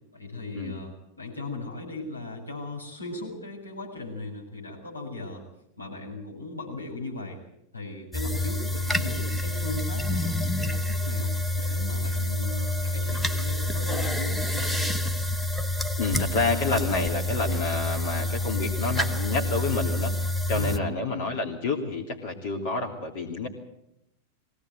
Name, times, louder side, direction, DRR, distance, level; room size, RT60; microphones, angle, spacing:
voice 1, 0.1-5.4 5.8-7.4 7.7-15.0 20.5-20.9, left 2 dB, 85° left, -2 dB, 7.2 m, -37 dB
sound 1, 8.1-20.8, left 1 dB, ahead, 1.0 m, -28 dB
voice 2, 16.0-20.1 20.5-23.5, left 3 dB, 50° left, 0 dB, 3.0 m, -28 dB
22.0 x 17.5 x 7.9 m, 0.80 s
figure-of-eight pair, 90°, 0 cm